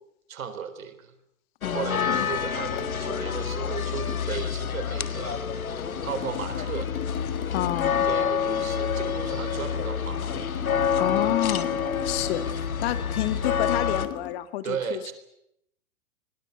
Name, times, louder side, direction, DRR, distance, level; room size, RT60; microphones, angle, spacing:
voice 1, 0.3-1.1 1.7-5.4 6.0-6.9 8.0-10.5 14.6-15.1, right 7 dB, 75° right, 11 dB, 4.0 m, -35 dB
sound 1, 1.6-14.1, left 7 dB, 85° left, 1.9 m, -28 dB
voice 2, 1.6-2.3 7.5-8.1 11.0-12.4 12.8-15.1, left 14 dB, 45° left, 12 dB, 2.0 m, -29 dB
sound 2, 2.8-3.0 4.1-4.3 5.8-8.1 10.2-12.3 14.0-14.3, left 11 dB, 30° left, 2.0 m, -38 dB
29.0 x 21.0 x 8.0 m, 0.78 s
hypercardioid pair, 125°, 41 cm